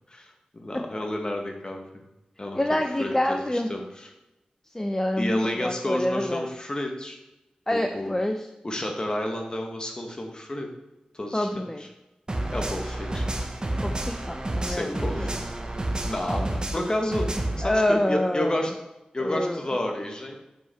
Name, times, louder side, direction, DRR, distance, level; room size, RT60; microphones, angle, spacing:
voice 1, 0.1-1.8 2.4-4.1 5.2-7.2 7.7-8.1 8.6-10.7 11.1-11.9 12.5-13.2 14.6-15.4 16.0-17.3 17.6-18.7 19.1-20.4, left 1 dB, 35° left, 2 dB, 1.5 m, -31 dB
voice 2, 2.5-3.7 4.7-6.5 7.7-8.4 11.3-11.8 13.8-15.3 17.6-18.6 19.2-19.6, left 1 dB, 15° left, 5 dB, 0.5 m, -26 dB
sound 1, 12.3-17.6, right 1 dB, 35° right, 0.9 m, -30 dB
6.9 x 5.5 x 4.3 m, 0.97 s
wide cardioid pair, 70°, 3 cm